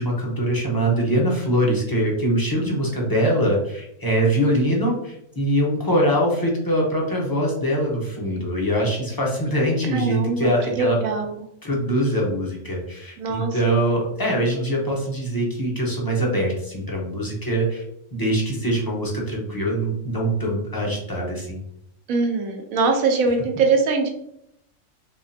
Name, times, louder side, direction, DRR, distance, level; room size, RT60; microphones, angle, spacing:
voice 1, 0.0-11.0 11.6-17.8 18.1-21.6, right 1 dB, 20° left, -3 dB, 0.7 m, -23 dB
voice 2, 9.9-11.3 13.2-13.8 22.1-24.1, right 4 dB, 75° right, 3 dB, 1.2 m, -22 dB
3.6 x 3.3 x 2.7 m, 0.76 s
omnidirectional pair, 1.5 m